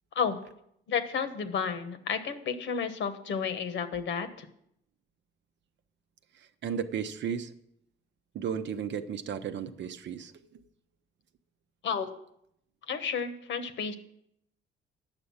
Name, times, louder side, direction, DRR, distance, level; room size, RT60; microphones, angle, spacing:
voice 1, 0.9-4.5 11.8-12.1 12.9-14.0, left 6 dB, 70° left, 9 dB, 1.1 m, -31 dB
voice 2, 6.4-7.5 8.3-10.6, right 7 dB, 65° right, 10 dB, 0.8 m, -34 dB
9.0 x 6.7 x 7.1 m, 0.75 s
cardioid pair, 90°, 20 cm